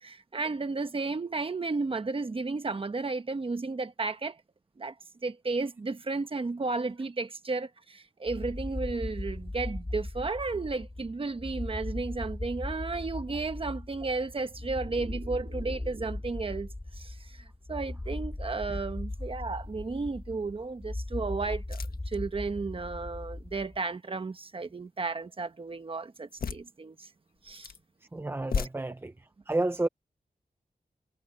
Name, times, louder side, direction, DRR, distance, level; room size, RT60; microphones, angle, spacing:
voice 1, 0.0-4.4 4.8-4.9 5.2-16.7 17.0-27.1 27.4-27.7, right 3 dB, 40° right, 1.1 m, -33 dB
sound 1, 8.3-23.8, left 2 dB, 20° left, 5.1 m, -38 dB
sound 2, 14.0-16.5, right 5 dB, 65° right, 4.9 m, -52 dB
sound 3, 19.1-19.5 20.0-20.1 21.6-22.2 26.3-26.7 27.4-27.8 28.4-28.7, left 6 dB, 85° left, 1.5 m, -35 dB
voice 2, 28.1-29.1 29.5-29.9, right 2 dB, 15° right, 0.6 m, -30 dB
wide cardioid pair, 130°, 15 cm